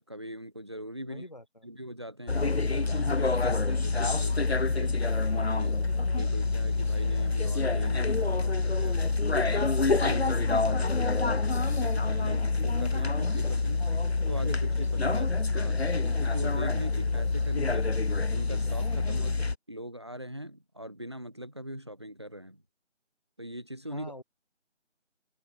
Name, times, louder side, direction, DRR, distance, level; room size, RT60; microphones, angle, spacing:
voice 1, 0.0-1.3 1.6-5.7 6.2-9.0 9.4-17.9 18.3-19.3 19.7-22.6 23.4-24.1, equal, 20° right, 2.9 m, -42 dB
voice 2, 1.1-1.7 23.9-24.2, left 1 dB, 35° left, 2.3 m, -47 dB
sound 1, 2.3-19.6, left 3 dB, 60° left, 0.7 m, -27 dB
figure-of-eight pair, 180°, 36 cm